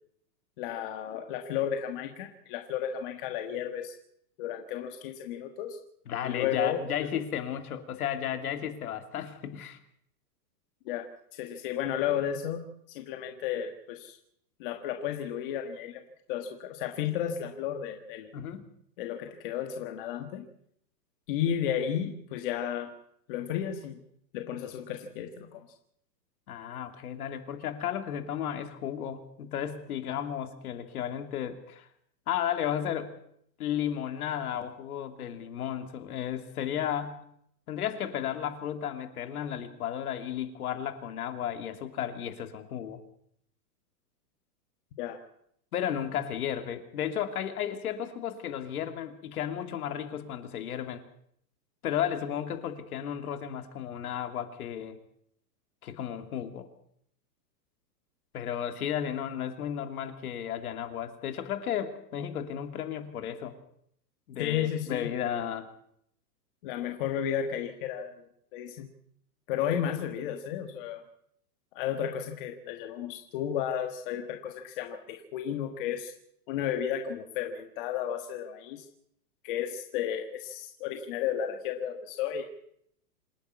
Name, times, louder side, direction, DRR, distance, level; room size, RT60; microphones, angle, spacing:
voice 1, 0.6-4.0 4.4-5.8 6.2-7.1 10.8-14.2 14.6-16.0 16.3-18.3 19.0-20.4 21.3-22.9 23.3-24.0 24.3-25.7 45.0-45.2 64.4-65.1 66.6-68.9 69.5-71.0 71.7-76.1 76.5-78.9 79.4-82.5, left 9 dB, 30° left, 5 dB, 1.5 m, -33 dB
voice 2, 6.1-9.8 18.3-18.6 26.5-31.9 32.3-33.1 33.6-37.2 37.7-43.0 45.7-51.0 51.8-55.0 55.8-56.7 58.3-63.6 64.3-65.7, left 9 dB, 60° left, 8 dB, 2.8 m, -34 dB
26.5 x 10.5 x 9.5 m, 0.71 s
supercardioid pair, 170°, 50 cm